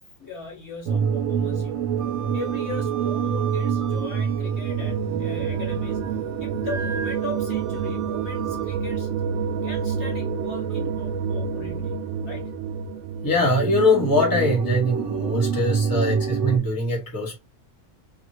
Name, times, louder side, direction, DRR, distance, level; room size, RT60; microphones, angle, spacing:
voice 1, 0.0-2.1 2.3-9.1 9.6-12.5, left 3 dB, 55° left, 1.2 m, -38 dB
sound 1, 0.9-16.6, right 7 dB, 70° right, 0.9 m, -26 dB
Wind instrument woodwind instrument, 2.0-5.0 5.4-6.1 6.6-8.8, right 6 dB, 55° right, 1.3 m, -39 dB
voice 2, 13.2-17.4, left 1 dB, 15° left, 1.1 m, -22 dB
2.8 x 2.4 x 3.0 m
omnidirectional pair, 1.4 m